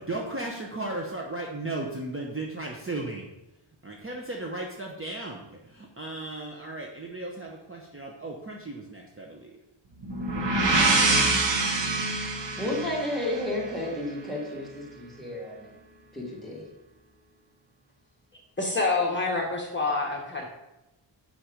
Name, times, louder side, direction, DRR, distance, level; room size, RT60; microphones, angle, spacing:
voice 1, 0.0-3.2 3.8-9.5, right 2 dB, 25° right, -1 dB, 0.9 m, -35 dB
sound 1, 10.0-13.9, right 2 dB, 60° right, 1.3 m, -25 dB
voice 2, 12.1-15.7 16.1-16.7, left 1 dB, ahead, -5 dB, 2.6 m, -32 dB
voice 3, 18.6-20.4, left 3 dB, 20° left, -2 dB, 1.2 m, -27 dB
7.7 x 5.7 x 5.0 m, 0.94 s
wide cardioid pair, 145°, 49 cm